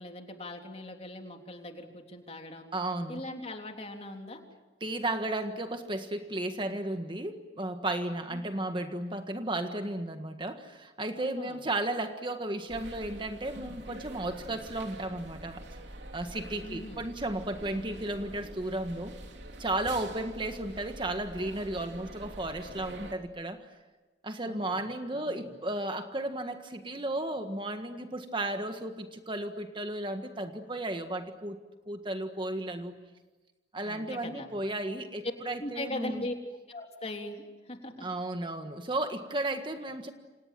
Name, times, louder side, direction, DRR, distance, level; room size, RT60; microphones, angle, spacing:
voice 1, 0.0-2.7 3.1-4.4 8.3-8.4 11.1-11.6 16.6-17.0 17.7-17.9 24.4-24.8 25.1-25.5 33.8-34.5 35.6-36.3 36.7-38.1, left 1 dB, 35° left, 3 dB, 3.5 m, -40 dB
voice 2, 2.7-3.2 4.8-15.6 16.1-19.2 19.6-23.6 24.2-31.6 31.9-33.0 33.7-36.3 38.0-40.1, right 1 dB, 30° right, 6 dB, 1.6 m, -34 dB
sound 1, 12.7-23.1, right 1 dB, 85° right, 3.1 m, -46 dB
29.0 x 27.0 x 7.6 m, 1.2 s
head